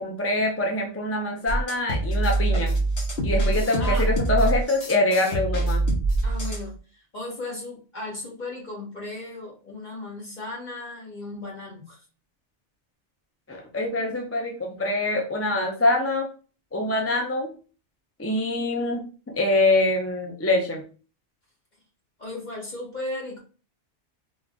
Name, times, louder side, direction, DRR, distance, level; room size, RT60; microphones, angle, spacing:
voice 1, 0.0-2.7 3.2-5.8 13.5-16.3 16.7-17.5 18.2-20.8, left 2 dB, 20° left, 1 dB, 0.4 m, -24 dB
sound 1, 1.5-6.7, right 2 dB, 60° left, 1.3 m, -24 dB
voice 2, 3.8-4.1 6.2-6.7 7.1-12.0 22.2-23.4, left 2 dB, 40° left, -3 dB, 1.5 m, -35 dB
3.7 x 2.5 x 3.6 m, 0.36 s
omnidirectional pair, 1.2 m